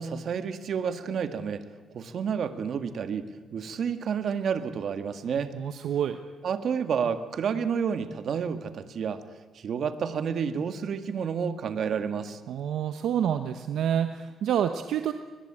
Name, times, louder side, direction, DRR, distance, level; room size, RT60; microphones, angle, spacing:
voice 1, 0.0-1.6 1.9-5.6 6.4-9.2 9.5-12.4, right 7 dB, 60° right, 9 dB, 1.8 m, -30 dB
voice 2, 5.5-6.2 12.5-15.1, right 9 dB, 80° right, 8 dB, 1.1 m, -28 dB
22.5 x 20.5 x 8.8 m, 1.4 s
cardioid pair, 105°, 0 cm